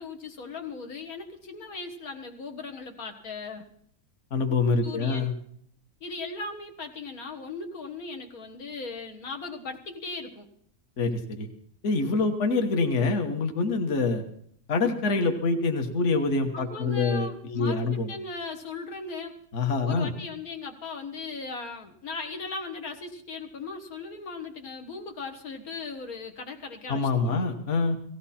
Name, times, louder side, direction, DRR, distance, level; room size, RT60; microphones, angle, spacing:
voice 1, 0.0-3.7 4.8-5.3 6.0-10.5 16.5-19.4 19.9-27.5, left 4 dB, 85° left, 3 dB, 2.0 m, -38 dB
voice 2, 4.3-5.3 11.0-11.5 11.8-14.2 14.7-18.1 19.5-20.1 26.9-28.0, left 3 dB, 55° left, 4 dB, 1.6 m, -25 dB
17.5 x 16.0 x 4.3 m, 0.65 s
omnidirectional pair, 1.5 m